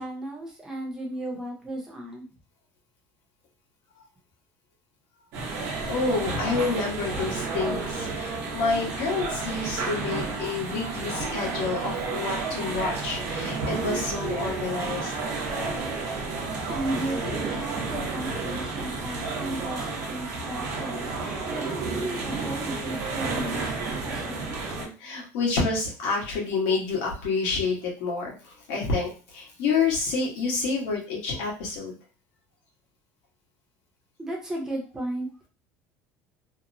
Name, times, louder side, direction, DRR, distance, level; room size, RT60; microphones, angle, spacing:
voice 1, 0.0-2.3 16.7-21.1 21.5-24.5 34.2-35.3, right 1 dB, 10° right, -1 dB, 0.7 m, -34 dB
sound 1, 5.3-24.9, right 3 dB, 60° right, 0.8 m, -31 dB
voice 2, 5.9-15.1 24.8-32.0, left 4 dB, 85° left, -2 dB, 1.2 m, -28 dB
2.9 x 2.0 x 2.6 m, 0.35 s
cardioid pair, 175°, 6 cm